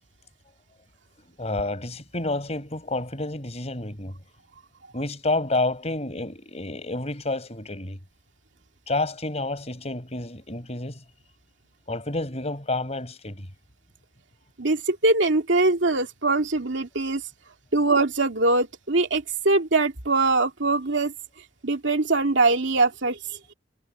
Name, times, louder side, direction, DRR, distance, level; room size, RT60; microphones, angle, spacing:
voice 1, 1.4-4.2 4.9-8.0 8.9-11.0 11.9-13.5, left 2 dB, 35° left, 5.0 m, -29 dB
voice 2, 14.6-17.2 17.7-21.1 21.6-23.2, right 3 dB, 80° right, 2.3 m, -22 dB
head